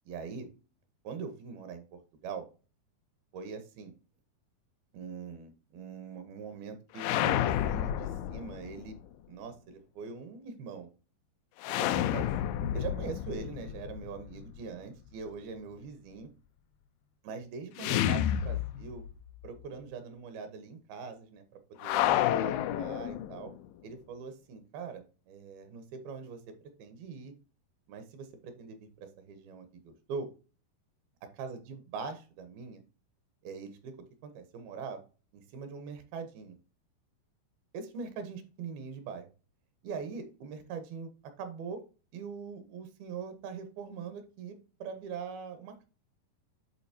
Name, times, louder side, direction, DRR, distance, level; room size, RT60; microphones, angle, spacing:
voice 1, 0.1-0.5 1.0-2.5 3.3-3.9 4.9-9.0 9.3-10.9 11.7-12.3 12.7-16.3 17.2-19.0 19.4-22.0 22.4-23.5 23.8-26.4 26.8-27.3 27.9-30.3 31.4-32.8 33.4-34.0 34.2-35.0 35.3-36.6 37.7-39.3 39.8-41.1 41.4-41.8 42.1-45.9, right 5 dB, 75° right, 8 dB, 2.9 m, -42 dB
sound 1, 6.9-8.9 11.6-14.6 17.8-19.2 19.4-19.5 21.8-23.6, left 11 dB, 85° left, 2.0 m, -30 dB
10.5 x 4.0 x 2.7 m, 0.34 s
omnidirectional pair, 4.5 m